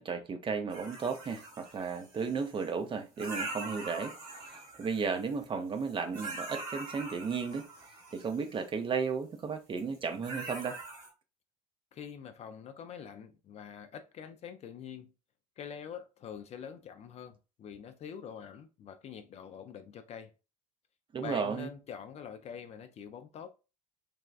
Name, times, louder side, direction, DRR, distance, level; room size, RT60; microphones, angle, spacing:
voice 1, 0.0-7.7 8.1-10.8 21.1-21.7, right 5 dB, 25° right, 0.5 m, -34 dB
sound 1, 0.7-2.7 3.2-5.4 5.8-8.6 9.8-10.0 10.2-11.1, right 2 dB, 70° right, 1.2 m, -43 dB
voice 2, 11.9-15.1 15.6-20.3 21.2-23.5, left 8 dB, 35° left, 0.4 m, -45 dB
3.3 x 2.2 x 2.3 m
hypercardioid pair, 70°, 18 cm